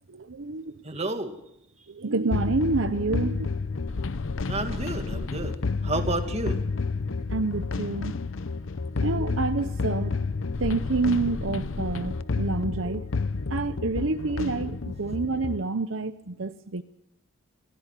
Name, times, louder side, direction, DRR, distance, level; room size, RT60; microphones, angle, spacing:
voice 1, 0.1-0.7 1.0-1.1 1.9-3.5 7.3-8.2 9.0-10.1 10.6-13.1 13.5-16.8, right 3 dB, 70° right, 10 dB, 0.9 m, -28 dB
voice 2, 0.8-1.4 4.4-5.6 5.8-6.6, right 2 dB, 30° right, 6 dB, 2.2 m, -30 dB
sound 1, 2.3-15.6, left 4 dB, 75° left, 0.8 m, -30 dB
24.5 x 15.0 x 8.3 m, 0.83 s
head